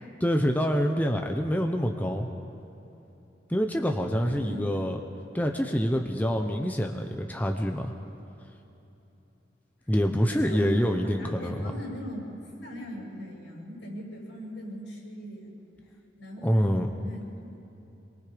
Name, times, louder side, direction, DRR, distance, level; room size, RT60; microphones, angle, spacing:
voice 1, 0.2-2.3 3.5-5.0 5.3-7.9 9.9-11.7 16.4-16.9, equal, 10° left, 3 dB, 0.9 m, -26 dB
voice 2, 4.2-4.6 10.3-15.6 16.2-17.6, equal, 85° left, -2 dB, 7.4 m, -40 dB
26.5 x 23.0 x 5.2 m, 3.0 s
head